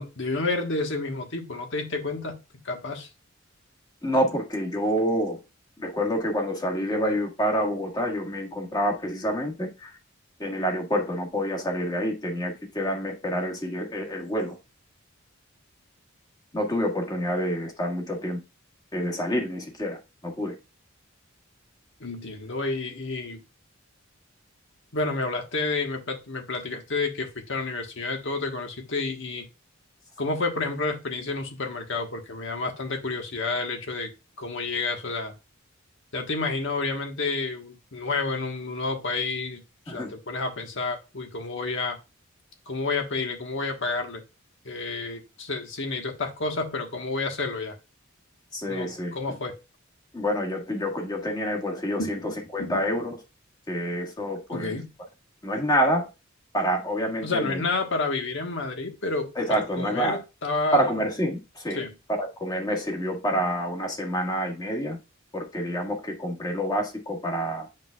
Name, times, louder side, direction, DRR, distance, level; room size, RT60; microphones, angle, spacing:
voice 1, 0.0-2.4 2.6-3.1 22.0-23.4 24.9-29.5 30.2-34.1 34.4-35.3 36.1-42.0 42.7-44.2 44.6-47.8 48.7-49.6 52.0-52.8 54.5-54.9 57.2-60.8 61.7-61.9, left 3 dB, 65° left, 1.4 m, -30 dB
voice 2, 4.0-5.4 5.8-10.0 10.4-14.6 16.5-18.4 18.9-20.6 39.9-40.1 48.5-49.1 50.1-53.2 53.7-54.8 55.4-56.1 56.5-57.6 59.3-60.2 60.7-61.8 62.1-65.0 65.3-67.7, equal, 20° left, 1.6 m, -27 dB
9.6 x 5.2 x 2.4 m
head